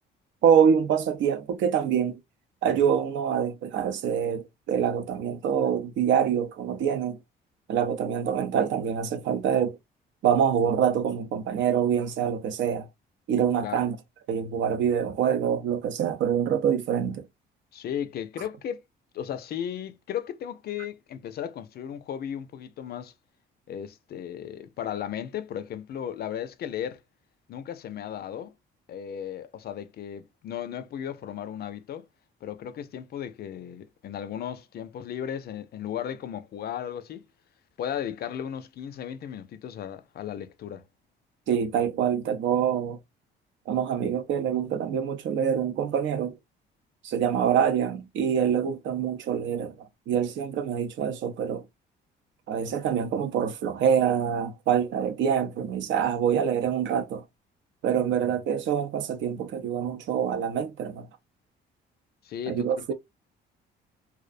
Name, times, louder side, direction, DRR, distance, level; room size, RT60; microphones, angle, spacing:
voice 1, 0.4-2.2 2.6-7.2 7.7-9.8 10.2-12.9 13.3-14.0 14.3-17.2 41.5-43.0 43.7-46.4 47.0-51.6 52.5-57.2 57.8-61.1 62.5-62.9, right 8 dB, 70° right, 0.5 m, -25 dB
voice 2, 17.7-18.8 19.1-23.1 23.7-27.0 27.5-28.5 28.9-32.1 32.4-37.3 37.8-40.8 58.2-58.3 62.2-62.9, left 9 dB, 55° left, 0.4 m, -35 dB
2.5 x 2.1 x 2.4 m
cardioid pair, 90°, 20 cm